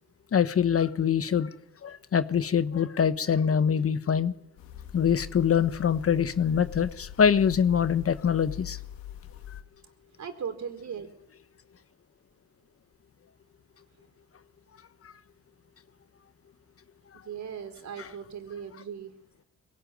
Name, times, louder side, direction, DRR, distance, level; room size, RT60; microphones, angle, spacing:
voice 1, 0.3-1.5 1.8-4.3 4.9-8.8 18.0-18.1, left 7 dB, 40° left, 12 dB, 1.3 m, -24 dB
sound 1, 4.6-9.6, left 11 dB, 80° left, 2.0 m, -43 dB
voice 2, 10.2-11.1 17.1-19.1, right 7 dB, 55° right, 6 dB, 4.5 m, -38 dB
22.0 x 18.0 x 9.4 m, 0.76 s
supercardioid pair, 65°, 34 cm